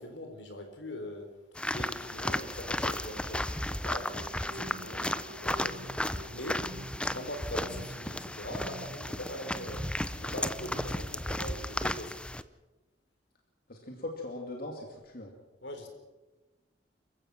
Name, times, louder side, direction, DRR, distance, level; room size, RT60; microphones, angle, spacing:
voice 1, 0.0-5.9 6.3-6.7 7.1-9.9 10.2-12.2 15.6-15.9, equal, 75° left, 6 dB, 3.9 m, -42 dB
sound 1, 1.6-12.4, left 1 dB, 5° left, 0.6 m, -34 dB
sound 2, 3.8-11.2, right 1 dB, 60° right, 1.1 m, -48 dB
voice 2, 13.7-15.3, left 2 dB, 55° left, 1 dB, 2.6 m, -40 dB
27.5 x 15.5 x 6.1 m, 1.1 s
head